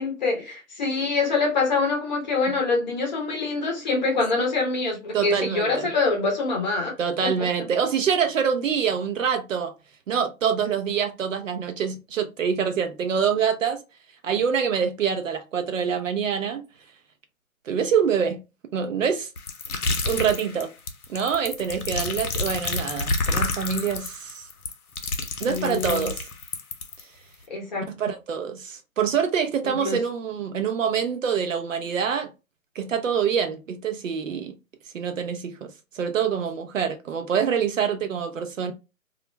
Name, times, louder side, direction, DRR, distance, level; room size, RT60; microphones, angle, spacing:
voice 1, 0.0-6.9 7.2-7.6 25.4-26.1 27.5-27.9 29.6-30.0, left 3 dB, 30° left, 0.7 m, -25 dB
voice 2, 5.1-5.9 7.0-9.7 10.1-13.8 14.2-16.6 17.7-18.4 18.7-19.3 20.0-20.7 21.1-24.5 25.4-26.2 27.9-32.3 32.8-34.6 34.9-38.7, right 7 dB, 60° right, 0.6 m, -25 dB
sound 1, 19.4-27.0, left 3 dB, 90° left, 0.7 m, -29 dB
2.3 x 2.1 x 3.0 m
hypercardioid pair, 145°, 43 cm